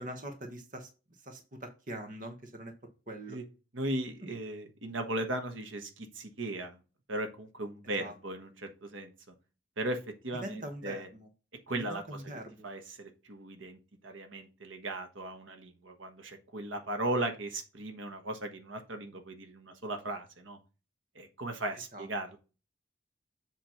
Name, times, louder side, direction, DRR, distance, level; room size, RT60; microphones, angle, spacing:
voice 1, 0.0-2.7 3.1-3.4 4.2-4.4 8.0-8.1 10.4-11.3 11.9-12.7 21.9-22.1, right 1 dB, 45° right, 5 dB, 1.3 m, -43 dB
voice 2, 3.7-6.8 7.1-9.1 9.8-11.1 11.7-12.3 12.6-20.6 21.1-22.4, right 1 dB, 85° right, 6 dB, 1.4 m, -37 dB
7.5 x 3.3 x 5.8 m, 0.31 s
head